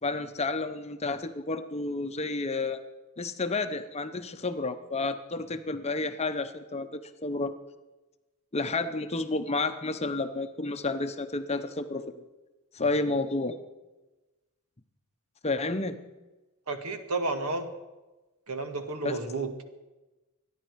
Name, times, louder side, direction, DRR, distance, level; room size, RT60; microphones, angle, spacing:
voice 1, 0.0-2.8 3.2-7.5 8.5-12.2 12.7-13.6 15.4-16.0 19.0-19.2, left 3 dB, 30° left, 9 dB, 0.8 m, -31 dB
voice 2, 16.7-17.7 18.5-19.5, right 3 dB, 90° right, 7 dB, 1.7 m, -31 dB
24.5 x 10.5 x 4.7 m, 1.1 s
head